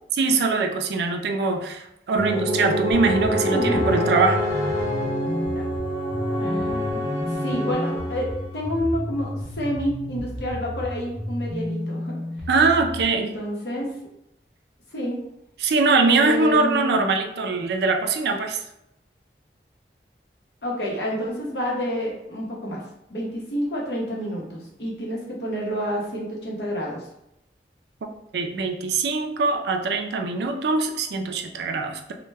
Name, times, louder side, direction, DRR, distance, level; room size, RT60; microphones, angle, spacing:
voice 1, 0.2-4.4 12.5-13.3 15.6-18.6 28.3-32.1, right 3 dB, 70° right, 5 dB, 0.3 m, -22 dB
sound 1, 2.2-8.6, equal, 20° left, 0.7 m, -26 dB
sound 2, 2.9-13.0, left 1 dB, 15° right, 0.8 m, -32 dB
voice 2, 3.5-3.8 5.5-5.6 6.4-12.2 13.1-13.9 14.9-15.2 16.0-17.0 20.6-22.8 23.1-27.0, equal, 75° left, -3 dB, 0.7 m, -29 dB
2.1 x 2.1 x 3.3 m, 0.82 s
head